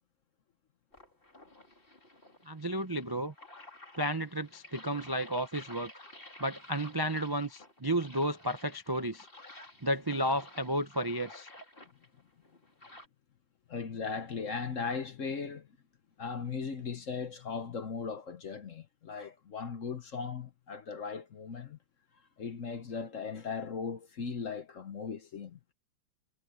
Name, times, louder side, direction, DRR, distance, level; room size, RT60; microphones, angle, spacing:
sound 1, 0.9-13.1, left 2 dB, 30° left, 4.2 m, -53 dB
voice 1, 2.5-3.3 4.0-5.9 6.4-9.3 9.8-11.5, right 1 dB, 25° right, 0.5 m, -32 dB
voice 2, 13.7-15.7 16.2-21.8 22.4-25.6, left 5 dB, 50° left, 1.2 m, -38 dB
omnidirectional pair, 2.1 m